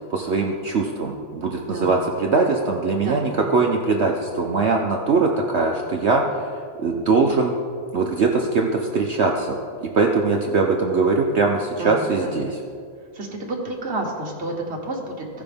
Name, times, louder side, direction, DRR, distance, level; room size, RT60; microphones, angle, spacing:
voice 1, 0.1-6.4 6.8-7.6 7.9-9.5 9.8-12.6, right 4 dB, 85° right, 1 dB, 0.6 m, -21 dB
voice 2, 11.8-12.3 13.1-15.4, right 1 dB, 35° right, -1 dB, 1.6 m, -30 dB
16.5 x 5.9 x 3.5 m, 2.2 s
omnidirectional pair, 2.1 m